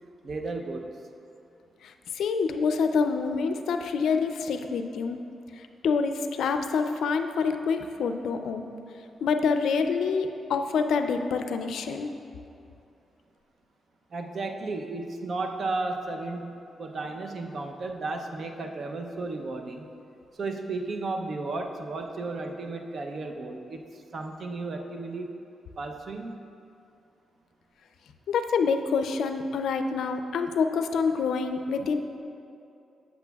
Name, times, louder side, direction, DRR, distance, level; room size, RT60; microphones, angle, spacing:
voice 1, 0.2-1.0 14.1-19.9 20.3-23.8 24.1-25.3 25.8-26.4, right 3 dB, 55° right, 4 dB, 0.6 m, -34 dB
voice 2, 1.8-5.2 5.6-8.6 9.2-12.1 28.3-32.0, left 5 dB, 80° left, 7 dB, 0.4 m, -27 dB
8.0 x 7.9 x 2.3 m, 2.6 s
cardioid pair, 80°, 0 cm